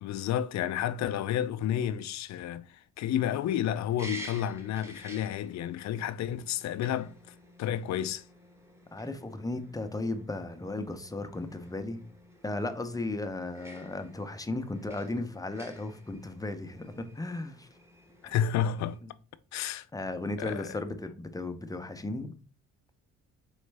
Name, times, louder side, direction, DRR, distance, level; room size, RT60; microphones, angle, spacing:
voice 1, 0.0-2.7 3.0-7.1 7.6-8.2 18.2-19.0 19.5-19.9 20.4-20.7, left 10 dB, 65° left, 0.5 m, -30 dB
sound 1, 3.0-19.0, equal, 10° right, 1.0 m, -51 dB
voice 2, 8.9-12.1 12.4-17.7 18.2-18.3 19.0-19.1 19.9-22.3, left 2 dB, 10° left, 0.6 m, -35 dB
4.4 x 3.2 x 3.2 m
cardioid pair, 90°, 30 cm